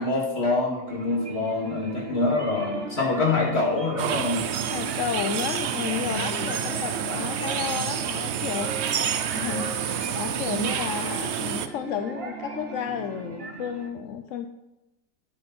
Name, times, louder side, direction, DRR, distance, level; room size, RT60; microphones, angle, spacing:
voice 1, 0.0-4.5 6.1-6.5, left 3 dB, 40° left, -2 dB, 2.8 m, -26 dB
sound 1, 0.9-13.9, right 4 dB, 40° right, 1.3 m, -38 dB
voice 2, 1.6-2.0 4.4-14.5, left 9 dB, 65° left, 8 dB, 0.9 m, -33 dB
sound 2, 4.0-11.7, right 9 dB, 60° right, 0.8 m, -29 dB
11.5 x 9.4 x 4.3 m, 0.97 s
omnidirectional pair, 1.7 m